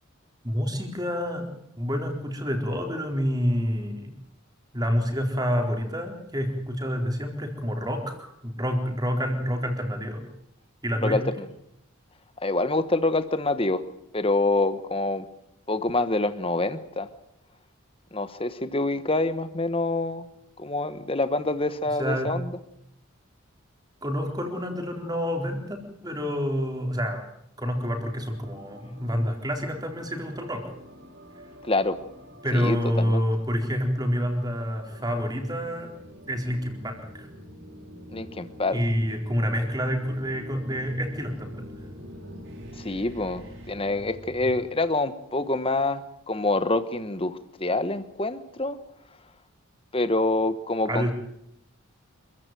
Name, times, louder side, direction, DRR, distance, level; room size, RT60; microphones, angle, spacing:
voice 1, 0.4-1.5 1.8-4.1 4.7-10.2 10.8-11.2 22.0-22.3 24.0-27.2 27.6-30.6 32.4-35.9 36.3-37.3 38.7-41.6 50.9-51.1, equal, 20° right, 3 dB, 4.1 m, -28 dB
voice 2, 11.0-11.5 12.4-13.8 14.1-15.3 15.7-17.1 18.1-20.2 20.6-22.5 31.6-32.0 32.5-33.2 38.1-38.8 42.8-48.8 49.9-51.0, left 2 dB, 25° left, 12 dB, 1.2 m, -26 dB
sound 1, 27.9-44.7, equal, 55° right, 5.7 m, -46 dB
27.0 x 15.0 x 9.3 m, 0.76 s
head